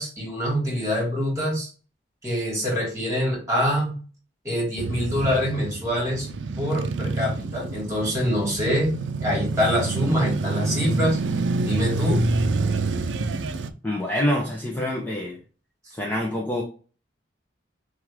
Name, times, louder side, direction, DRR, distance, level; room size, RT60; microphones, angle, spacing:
voice 1, 0.0-1.7 2.2-4.0 4.4-6.3 6.6-11.2 11.6-12.2, equal, 15° right, -2 dB, 2.5 m, -25 dB
Male speech man speaking / Motorcycle / Idling, 4.8-13.7, right 3 dB, 90° right, 0.5 m, -27 dB
voice 2, 13.8-15.4 15.9-16.6, left 1 dB, 10° left, -2 dB, 0.7 m, -26 dB
5.9 x 2.5 x 3.5 m, 0.38 s
head